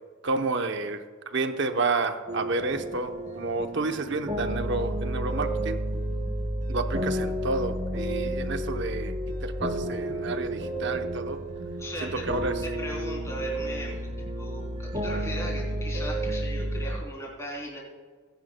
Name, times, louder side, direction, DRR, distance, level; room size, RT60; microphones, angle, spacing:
voice 1, 0.2-1.0 1.3-5.8 6.7-11.4 12.0-12.5, right 3 dB, 60° right, 7 dB, 0.8 m, -30 dB
sound 1, 2.3-17.0, right 1 dB, 35° right, 2.2 m, -31 dB
voice 2, 11.8-12.2 12.6-13.9 14.4-17.8, left 1 dB, 15° left, -4 dB, 3.3 m, -38 dB
19.5 x 10.5 x 2.2 m, 1.5 s
head